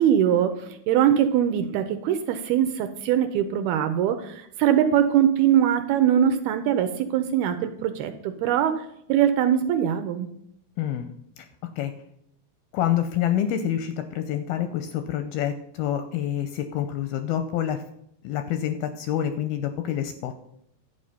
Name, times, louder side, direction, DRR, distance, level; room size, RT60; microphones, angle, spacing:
voice 1, 0.0-8.7 9.1-10.3, right 10 dB, 80° right, 8 dB, 2.4 m, -22 dB
voice 2, 10.8-11.1 11.8-11.9 12.7-17.8 18.2-20.3, left 10 dB, 85° left, 8 dB, 2.3 m, -27 dB
11.5 x 8.2 x 5.5 m, 0.74 s
omnidirectional pair, 4.9 m